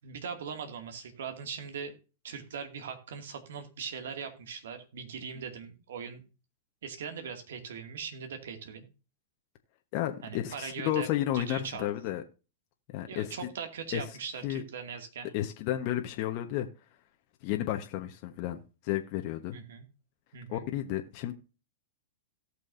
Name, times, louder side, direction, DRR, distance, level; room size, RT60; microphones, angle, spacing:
voice 1, 0.0-1.9 2.2-6.2 6.8-8.9 10.2-11.1 11.3-11.9 13.1-15.3 19.5-19.9 20.3-20.7, right 6 dB, 70° right, 2.3 m, -40 dB
voice 2, 9.9-12.2 12.9-13.3 13.9-14.0 14.4-14.6 15.3-16.7 17.4-19.6 20.5-21.3, left 13 dB, 50° left, 1.2 m, -32 dB
18.0 x 6.2 x 2.7 m
hypercardioid pair, 115°, 0 cm